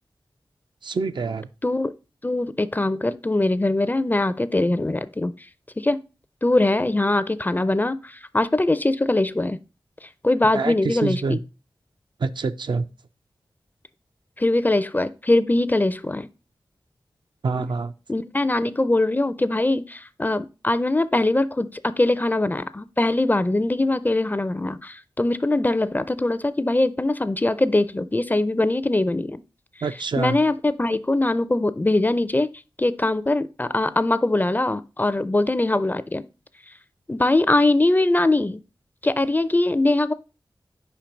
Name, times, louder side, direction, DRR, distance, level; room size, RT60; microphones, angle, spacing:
voice 1, 0.8-1.5 10.5-11.4 12.2-12.9 17.4-17.9 29.8-30.4, right 4 dB, 65° right, 0.4 m, -26 dB
voice 2, 1.6-1.9 2.2-5.4 5.8-6.0 6.4-9.6 10.0-11.4 14.4-16.3 18.1-29.4 30.2-32.5 32.8-36.2 37.1-38.6 39.0-40.1, left 2 dB, 20° left, 0.4 m, -22 dB
5.2 x 4.5 x 5.1 m
wide cardioid pair, 70°, 9 cm